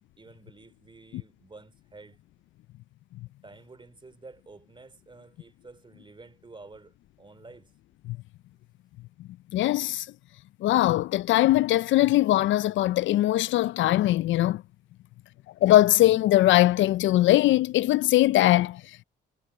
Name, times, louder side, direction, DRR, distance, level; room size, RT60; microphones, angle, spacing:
voice 1, 0.2-2.2 3.4-7.7, right 3 dB, 25° right, 3.2 m, -50 dB
voice 2, 9.5-10.1 10.6-14.6 15.6-18.8, left 15 dB, 75° left, 0.4 m, -21 dB
cardioid pair, 90°, 20 cm